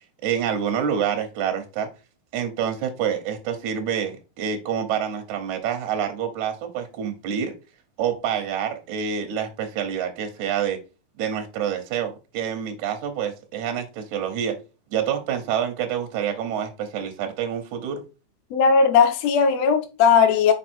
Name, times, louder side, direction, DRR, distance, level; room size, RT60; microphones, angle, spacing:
voice 1, 0.2-1.9 2.3-7.5 8.0-10.8 11.2-14.6 14.9-18.0, right 8 dB, 70° right, 1.9 m, -27 dB
voice 2, 18.5-20.5, left 6 dB, 90° left, 1.4 m, -17 dB
5.4 x 4.8 x 4.4 m
omnidirectional pair, 4.5 m